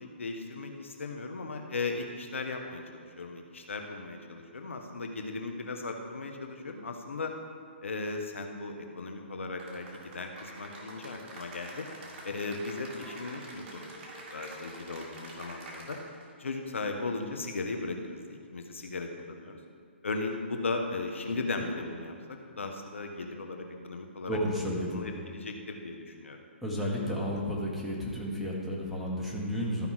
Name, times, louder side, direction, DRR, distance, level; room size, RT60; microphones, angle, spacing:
voice 1, 0.0-7.3 7.8-11.9 12.2-13.9 14.3-16.0 16.4-19.6 20.0-24.4 24.9-26.4, left 3 dB, 80° left, 4 dB, 1.1 m, -37 dB
Cheering / Applause, 9.6-16.3, right 1 dB, 40° right, 2.3 m, -46 dB
voice 2, 24.3-25.0 26.6-29.9, equal, ahead, -5 dB, 1.8 m, -32 dB
13.5 x 5.3 x 4.8 m, 2.3 s
hypercardioid pair, 135°, 7 cm